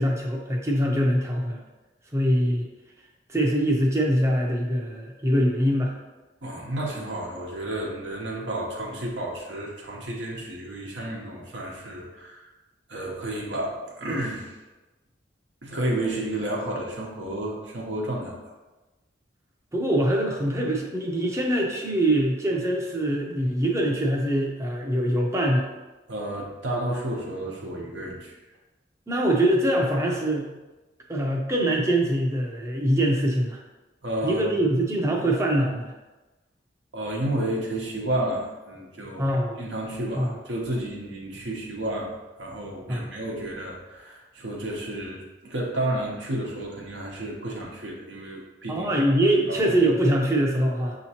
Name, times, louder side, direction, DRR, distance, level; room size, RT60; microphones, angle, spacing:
voice 1, 0.0-1.6 2.1-2.7 3.3-5.9 19.7-25.7 29.1-30.5 31.1-33.6 34.2-35.8 39.2-39.6 40.1-40.3 42.9-43.1 48.7-51.0, right 1 dB, 15° right, -1 dB, 0.5 m, -23 dB
voice 2, 6.4-12.5 12.9-14.5 15.6-18.4 26.1-28.3 34.0-34.5 36.9-39.3 39.6-42.1 42.4-48.9 49.5-49.6, right 1 dB, 80° right, -3 dB, 0.9 m, -31 dB
6.4 x 2.8 x 2.8 m, 1.1 s
head